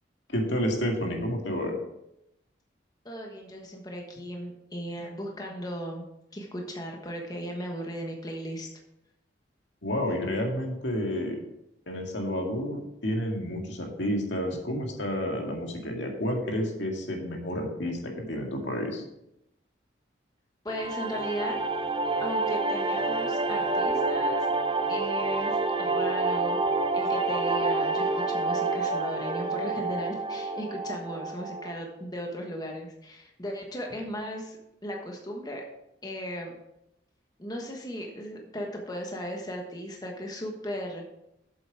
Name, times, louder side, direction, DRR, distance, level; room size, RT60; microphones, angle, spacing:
voice 1, 0.3-1.7 9.8-11.4 11.9-19.0, equal, 80° left, 1 dB, 2.0 m, -30 dB
voice 2, 3.0-6.0 6.3-8.7 20.6-21.6 22.2-24.5 24.9-26.6 26.9-34.6 34.8-35.6 36.0-36.5 37.4-41.1, equal, 20° left, 1 dB, 1.3 m, -36 dB
sound 1, 20.7-31.7, right 3 dB, 25° right, 0.5 m, -28 dB
7.9 x 7.8 x 4.8 m, 0.83 s
head